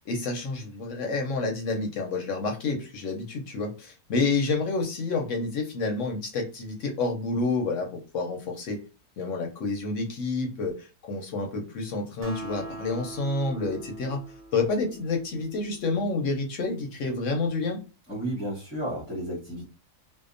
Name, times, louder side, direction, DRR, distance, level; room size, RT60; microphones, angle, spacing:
voice 1, 0.1-8.8 9.2-14.2 14.5-17.8, left 3 dB, 65° left, 2 dB, 0.8 m, -29 dB
Acoustic guitar, 12.2-15.9, right 2 dB, 55° right, 0.4 m, -41 dB
voice 2, 18.1-19.6, right 1 dB, 10° left, -8 dB, 0.6 m, -32 dB
2.7 x 2.0 x 2.4 m, 0.31 s
omnidirectional pair, 1.7 m